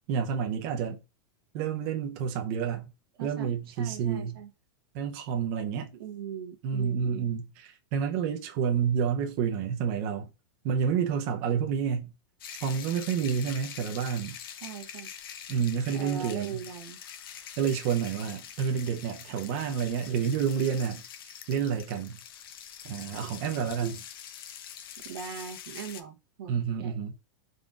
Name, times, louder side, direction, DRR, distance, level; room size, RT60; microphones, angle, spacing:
voice 1, 0.1-1.0 1.5-2.9 3.2-4.4 4.9-5.9 6.6-10.3 10.6-12.1 12.6-14.4 15.5-16.6 17.6-21.0 21.5-22.2 22.8-24.0 26.5-27.1, right 7 dB, 45° right, 0.6 m, -29 dB
voice 2, 3.8-4.5 5.9-7.4 14.6-15.1 15.9-17.0 23.8-24.0 25.0-27.1, right 7 dB, 90° right, 0.9 m, -40 dB
sound 1, 12.4-26.0, left 9 dB, 75° left, 0.7 m, -45 dB
4.9 x 3.9 x 2.4 m
supercardioid pair, 160°, 12 cm